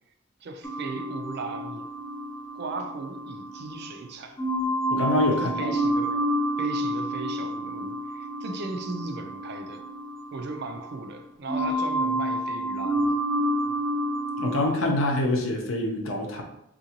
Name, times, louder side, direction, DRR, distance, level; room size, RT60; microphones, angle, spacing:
voice 1, 0.4-1.9 2.5-4.4 5.3-6.2 6.6-9.8 10.3-13.2, right 3 dB, 55° right, 6 dB, 0.4 m, -37 dB
sound 1, 0.6-3.9 4.4-11.2 11.5-14.7, equal, 20° left, 0.4 m, -29 dB
voice 2, 4.9-5.7 14.4-16.4, left 1 dB, 75° left, 2 dB, 0.7 m, -25 dB
3.6 x 2.5 x 2.9 m, 0.82 s
head